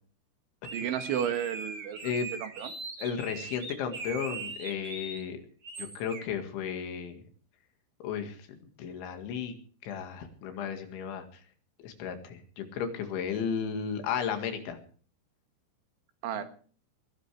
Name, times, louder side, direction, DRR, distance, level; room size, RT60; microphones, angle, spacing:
sound 1, 0.6-5.2 5.6-6.3, right 3 dB, 30° right, 2.0 m, -40 dB
voice 1, 0.7-2.0 2.4-2.7 16.2-16.4, right 10 dB, 80° right, 8 dB, 3.9 m, -32 dB
voice 2, 3.0-5.4 5.8-7.2 8.0-9.5 9.8-11.3 11.8-14.8 16.4-16.5, left 7 dB, 75° left, 6 dB, 4.3 m, -34 dB
21.0 x 17.5 x 3.4 m, 0.44 s
omnidirectional pair, 5.5 m